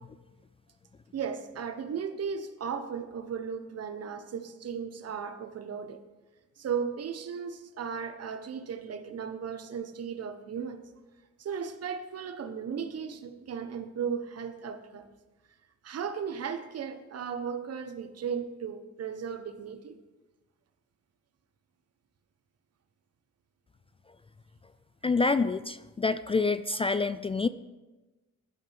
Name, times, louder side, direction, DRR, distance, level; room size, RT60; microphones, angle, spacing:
voice 1, 1.1-6.0 6.6-10.8 11.4-15.1 15.8-20.0, right 7 dB, 55° right, 9 dB, 1.3 m, -36 dB
voice 2, 25.0-27.5, left 4 dB, 20° left, 13 dB, 0.3 m, -27 dB
15.5 x 12.0 x 3.6 m, 1.2 s
cardioid pair, 90°, 30 cm